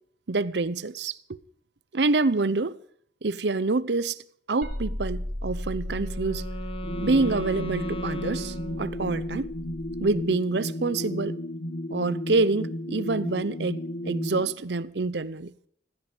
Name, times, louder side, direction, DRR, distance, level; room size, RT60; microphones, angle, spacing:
voice 1, 0.3-1.4 1.9-2.8 3.2-4.2 4.5-6.5 7.0-9.5 10.0-11.4 11.9-15.7, right 3 dB, 75° right, 0.7 m, -27 dB
sound 1, 4.6-10.1, left 1 dB, 55° right, 4.1 m, -36 dB
Wind instrument woodwind instrument, 5.5-9.4, right 1 dB, 30° left, 1.7 m, -38 dB
sound 2, 6.8-14.5, left 1 dB, 70° left, 1.2 m, -34 dB
16.0 x 16.0 x 5.0 m
head